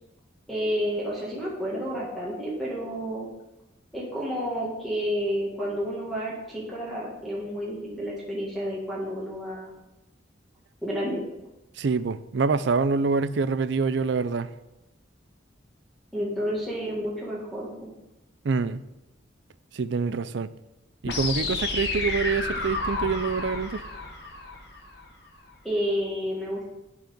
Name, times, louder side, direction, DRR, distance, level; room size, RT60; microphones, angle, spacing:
voice 1, 0.5-3.3 3.9-9.7 10.8-11.2 16.1-17.9 25.6-26.7, equal, ahead, 1.7 m, -30 dB
voice 2, 11.8-14.5 18.4-18.8 19.7-20.5 21.0-23.8, right 4 dB, 65° right, 0.4 m, -26 dB
sound 1, 21.0-25.0, left 3 dB, 60° left, 1.3 m, -31 dB
10.5 x 4.9 x 5.2 m
head